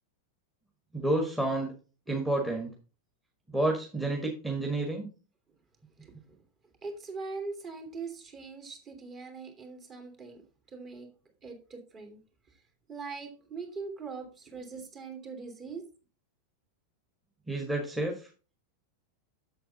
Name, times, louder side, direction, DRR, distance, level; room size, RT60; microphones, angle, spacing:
voice 1, 0.9-1.7 2.1-2.7 3.5-5.1 17.5-18.2, right 2 dB, 5° right, 1.7 m, -29 dB
voice 2, 6.0-6.4 6.8-11.1 11.4-12.2 12.9-15.8, right 4 dB, 30° right, 2.7 m, -41 dB
7.9 x 7.4 x 4.0 m
figure-of-eight pair, 90°, 0 cm